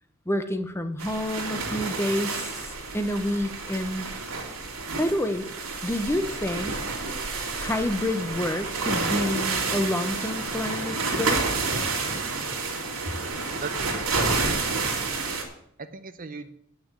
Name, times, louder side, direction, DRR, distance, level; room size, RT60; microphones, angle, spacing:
voice 1, 0.3-4.1 5.0-5.5 5.8-6.8 7.6-11.5, left 1 dB, 10° left, 8 dB, 0.8 m, -28 dB
sound 1, 1.0-15.4, right 3 dB, 90° right, 2.6 m, -29 dB
voice 2, 13.6-14.6 15.8-16.5, right 4 dB, 40° right, 11 dB, 0.6 m, -37 dB
8.8 x 6.4 x 8.3 m, 0.69 s
head